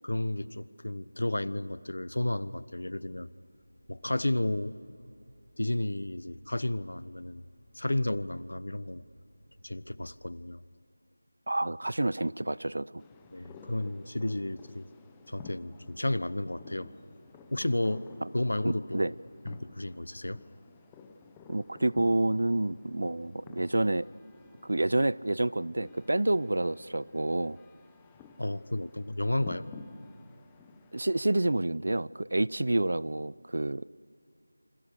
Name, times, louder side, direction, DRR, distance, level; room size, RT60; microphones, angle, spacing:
voice 1, 0.0-3.3 3.9-4.7 5.6-7.4 7.7-9.0 9.6-10.6 13.3-14.9 15.3-16.9 17.5-18.1 18.3-19.2 19.4-20.4 28.4-29.6, left 1 dB, 75° left, 17 dB, 1.0 m, -32 dB
sound 1, 3.5-10.4, equal, 15° right, 3.7 m, -61 dB
voice 2, 11.5-13.0 18.6-19.1 21.5-24.1 24.6-27.6 30.9-33.8, right 2 dB, 60° right, 21 dB, 0.6 m, -28 dB
sound 2, 13.0-31.3, left 4 dB, 5° left, 0.8 m, -52 dB
28.0 x 26.5 x 6.7 m, 2.5 s
figure-of-eight pair, 175°, 0 cm